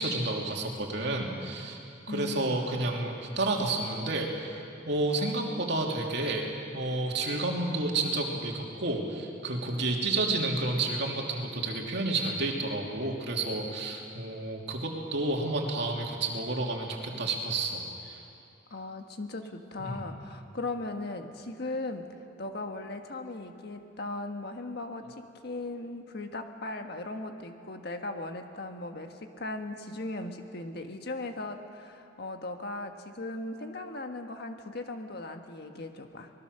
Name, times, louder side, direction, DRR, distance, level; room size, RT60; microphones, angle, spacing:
voice 1, 0.0-1.8 2.1-6.5 6.7-18.2 19.8-20.0, right 2 dB, 60° right, 0 dB, 2.9 m, -30 dB
voice 2, 2.1-2.6 18.7-22.1 22.4-36.3, left 2 dB, 55° left, 5 dB, 1.5 m, -38 dB
25.0 x 20.0 x 6.7 m, 2.7 s
head